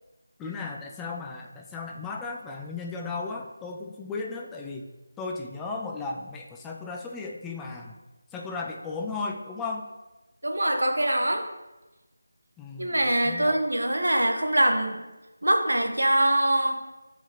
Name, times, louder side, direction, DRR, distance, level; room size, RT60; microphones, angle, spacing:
voice 1, 0.4-4.9 5.2-8.0 8.3-9.9 12.6-13.6, left 4 dB, 5° left, 0 dB, 0.3 m, -35 dB
voice 2, 10.4-11.5 12.8-15.0 15.4-16.8, right 1 dB, 90° right, 4 dB, 1.1 m, -23 dB
8.6 x 4.9 x 3.0 m, 1.1 s
figure-of-eight pair, 175°, 0 cm